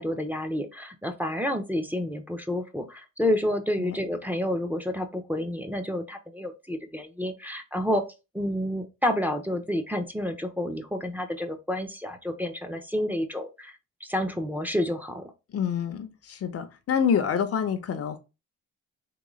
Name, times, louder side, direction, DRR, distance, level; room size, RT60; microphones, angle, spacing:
voice 1, 0.0-8.0 8.3-13.7 14.0-15.2, left 1 dB, 5° right, 0.7 m, -29 dB
voice 2, 15.5-18.2, left 7 dB, 50° left, 0.7 m, -27 dB
3.8 x 3.1 x 3.1 m
cardioid pair, 90°, 30 cm